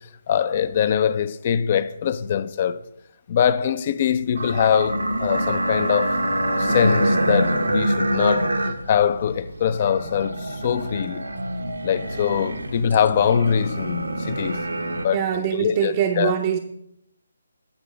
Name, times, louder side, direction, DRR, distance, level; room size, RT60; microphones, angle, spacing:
voice 1, 0.3-2.8 3.3-6.2 6.6-11.2 11.8-14.6 15.0-16.3, left 8 dB, 35° left, 0.5 m, -23 dB
sound 1, 4.3-15.0, right 1 dB, 85° right, 1.1 m, -25 dB
voice 2, 15.1-16.6, right 9 dB, 30° right, 0.6 m, -23 dB
8.8 x 4.7 x 6.2 m
figure-of-eight pair, 150°, 0 cm